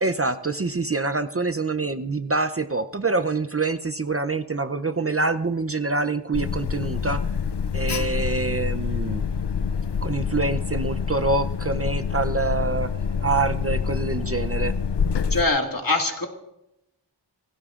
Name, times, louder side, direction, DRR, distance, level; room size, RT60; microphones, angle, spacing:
voice 1, 0.0-7.2 7.7-9.2 10.0-12.9 13.2-14.7, right 3 dB, 35° right, 10 dB, 0.6 m, -25 dB
Alarm, 6.3-15.5, left 6 dB, 70° left, 0.6 m, -26 dB
voice 2, 15.3-16.3, left 2 dB, 50° left, 2 dB, 2.2 m, -23 dB
29.0 x 16.0 x 2.5 m, 0.88 s
wide cardioid pair, 40°, 43 cm